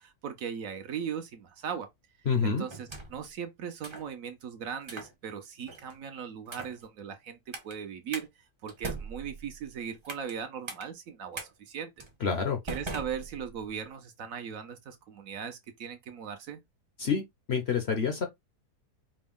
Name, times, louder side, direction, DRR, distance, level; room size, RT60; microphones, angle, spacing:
voice 1, 0.0-1.9 2.4-8.3 8.6-11.9 12.7-16.6, right 7 dB, 65° right, 1.1 m, -38 dB
voice 2, 2.3-2.6 12.2-12.6 17.0-17.2 17.5-18.2, left 6 dB, 55° left, 0.8 m, -27 dB
sound 1, 2.7-3.3 3.8-4.1 4.8-5.1 5.7-6.0 6.5-6.8 7.5-7.7 8.1-8.3 8.7-10.4 10.7-10.8 11.3-11.5 12.0-12.1 12.7-13.7, right 3 dB, 25° right, 0.7 m, -40 dB
5.1 x 2.2 x 3.6 m
omnidirectional pair, 1.7 m